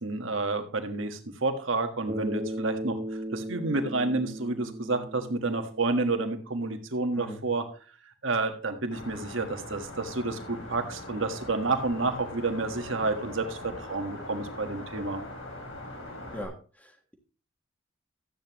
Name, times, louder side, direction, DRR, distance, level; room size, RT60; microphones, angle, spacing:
voice 1, 0.0-3.0 3.3-7.6 8.2-15.2, right 3 dB, 70° right, 6 dB, 1.5 m, -30 dB
Bass guitar, 2.1-6.5, right 1 dB, 30° right, 0.9 m, -37 dB
sound 1, 8.9-16.4, left 1 dB, 75° left, 2.9 m, -42 dB
voice 2, 16.3-17.1, equal, 5° left, 4 dB, 1.4 m, -41 dB
13.0 x 9.0 x 3.0 m, 0.38 s
head